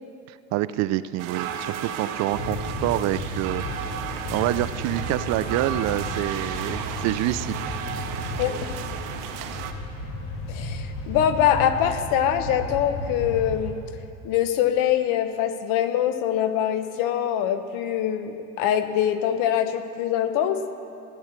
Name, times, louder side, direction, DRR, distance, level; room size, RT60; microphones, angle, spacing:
voice 1, 0.3-3.9 4.3-7.8, right 14 dB, 50° right, 15 dB, 0.4 m, -27 dB
sound 1, 1.2-9.7, right 8 dB, 65° right, 1.2 m, -34 dB
sound 2, 2.3-13.7, left 1 dB, 80° left, 2.4 m, -34 dB
voice 2, 8.4-8.8 10.5-13.8 14.2-20.6, left 10 dB, 65° left, 9 dB, 1.2 m, -24 dB
16.0 x 10.0 x 6.6 m, 2.6 s
cardioid pair, 145°, 35 cm